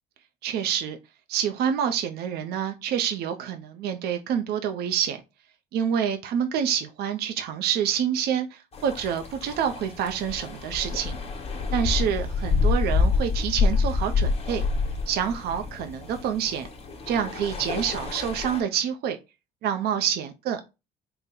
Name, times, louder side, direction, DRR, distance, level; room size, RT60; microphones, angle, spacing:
voice 1, 0.4-1.0 1.3-5.2 5.7-11.2 11.7-14.6 15.1-16.7 17.1-19.2 19.6-20.6, right 8 dB, 70° right, 0.5 m, -27 dB
sound 1, 8.7-18.6, left 4 dB, 35° left, 1.0 m, -27 dB
3.8 x 2.1 x 4.2 m
cardioid pair, 110°, 17 cm